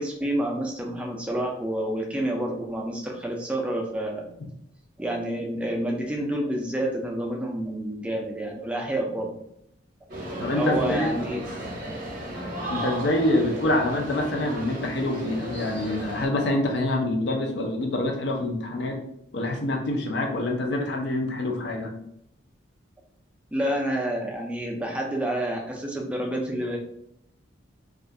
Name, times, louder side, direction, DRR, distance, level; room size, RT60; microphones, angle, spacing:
voice 1, 0.0-4.3 5.0-9.3 10.5-11.5 23.5-26.8, right 1 dB, 5° right, 0 dB, 0.3 m, -28 dB
sound 1, 10.1-16.3, right 1 dB, 45° right, 0.7 m, -34 dB
voice 2, 10.4-11.2 12.7-19.0 19.3-21.9, left 1 dB, 60° left, 2 dB, 0.5 m, -26 dB
2.3 x 2.2 x 2.6 m, 0.75 s
head